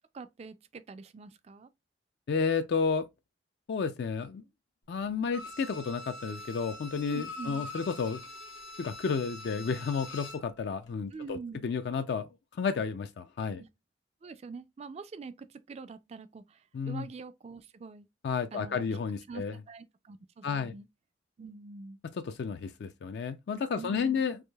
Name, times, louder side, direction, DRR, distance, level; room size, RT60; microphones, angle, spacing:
voice 1, 0.1-1.7 7.1-7.7 11.1-11.7 13.6-13.7 14.2-18.1 18.5-18.9 19.3-20.9 21.4-22.0 23.7-24.2, right 4 dB, 35° right, 0.3 m, -45 dB
voice 2, 2.3-3.1 3.7-4.4 4.9-8.2 8.8-12.3 12.6-13.6 16.7-17.1 18.2-19.5 20.4-20.7 22.3-24.4, left 5 dB, 60° left, 0.3 m, -31 dB
Bowed string instrument, 5.3-10.5 10.9-11.0, left 2 dB, 85° left, 0.9 m, -44 dB
4.7 x 2.6 x 2.2 m
head